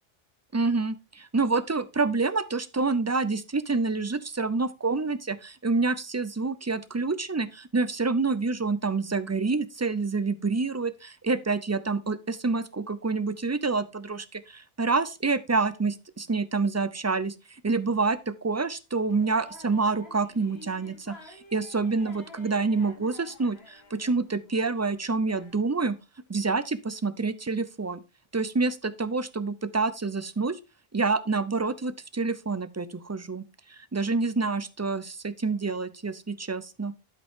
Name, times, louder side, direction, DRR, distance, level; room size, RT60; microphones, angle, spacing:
voice 1, 0.5-26.0 26.3-28.0 28.3-30.6 30.9-33.4 33.7-36.9, right 4 dB, 25° right, 0.4 m, -27 dB
sound 1, 19.1-25.5, left 2 dB, 80° left, 2.0 m, -50 dB
12.0 x 5.2 x 3.6 m
omnidirectional pair, 1.0 m